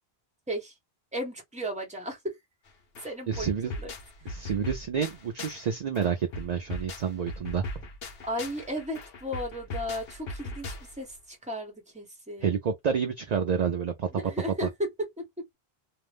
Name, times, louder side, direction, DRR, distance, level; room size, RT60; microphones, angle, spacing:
voice 1, 1.1-2.2 3.0-3.9 4.2-4.3 8.2-12.5 14.2-14.9 15.2-15.6, equal, 5° right, 0.9 m, -35 dB
sound 1, 2.7-2.8 2.9-5.7 5.9-11.1, left 2 dB, 70° left, 0.9 m, -39 dB
voice 2, 3.3-3.7 4.3-7.8 12.4-14.1 14.5-14.7, right 7 dB, 55° right, 0.5 m, -29 dB
2.5 x 2.1 x 3.3 m
omnidirectional pair, 1.1 m